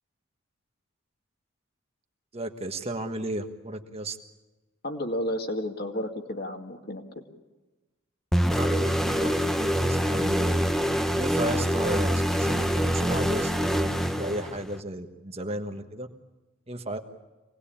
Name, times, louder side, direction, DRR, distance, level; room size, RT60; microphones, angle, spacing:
voice 1, 2.3-4.2 8.5-10.6 11.2-16.1 16.7-17.0, right 1 dB, 30° right, 6 dB, 1.4 m, -34 dB
voice 2, 4.8-7.3, left 1 dB, 45° left, 4 dB, 2.2 m, -32 dB
sound 1, 8.3-14.8, equal, ahead, 0.9 m, -25 dB
25.5 x 19.5 x 8.8 m, 1.1 s
head